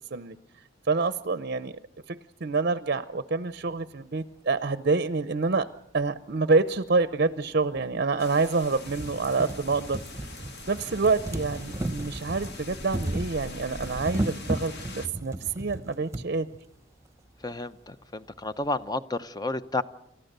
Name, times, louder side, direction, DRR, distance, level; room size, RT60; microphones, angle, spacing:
voice 1, 0.9-1.7 2.1-5.7 5.9-10.0 10.7-16.5, right 4 dB, 55° right, 13 dB, 0.7 m, -27 dB
sound 1, 6.7-6.8 7.8-7.9 8.3-8.4 8.7-16.3 17.2-17.3 17.5-17.6, right 1 dB, 15° right, 1.0 m, -35 dB
sound 2, 8.2-15.1, left 2 dB, 60° left, 2.0 m, -42 dB
voice 2, 17.4-19.8, left 2 dB, 20° left, 13 dB, 0.7 m, -31 dB
29.0 x 14.0 x 6.7 m, 0.84 s
head